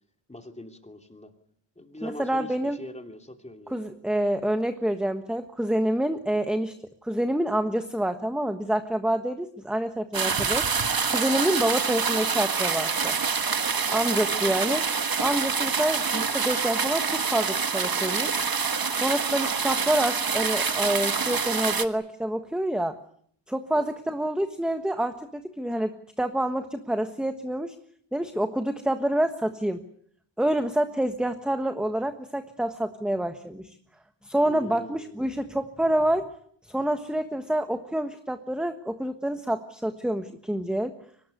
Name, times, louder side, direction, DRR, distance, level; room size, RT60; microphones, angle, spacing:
voice 1, 0.3-1.3 1.8-3.8 14.3-14.5 23.7-23.9 34.5-35.3, left 1 dB, 15° left, 5 dB, 2.9 m, -42 dB
voice 2, 2.0-2.8 3.7-6.7 7.0-10.7 11.1-13.2 13.9-14.8 15.2-18.4 18.9-23.0 23.5-27.7 28.1-29.8 30.4-33.7 34.2-36.3 36.7-40.9, right 1 dB, ahead, 8 dB, 1.3 m, -27 dB
sound 1, 10.1-21.8, right 5 dB, 50° right, 1.5 m, -26 dB
24.0 x 19.0 x 9.8 m, 0.65 s
wide cardioid pair, 115°, 46 cm